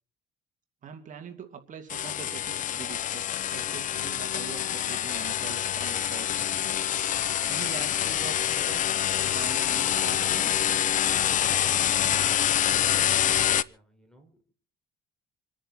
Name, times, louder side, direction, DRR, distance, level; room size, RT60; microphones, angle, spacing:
voice 1, 0.8-6.5 7.4-10.5, right 7 dB, 50° right, 5 dB, 2.5 m, -43 dB
sound 1, 1.9-13.6, left 10 dB, 50° left, 0.7 m, -26 dB
voice 2, 13.6-14.5, right 1 dB, 5° left, 4 dB, 5.2 m, -60 dB
26.5 x 10.0 x 4.3 m, 0.42 s
cardioid pair, 110°, 17 cm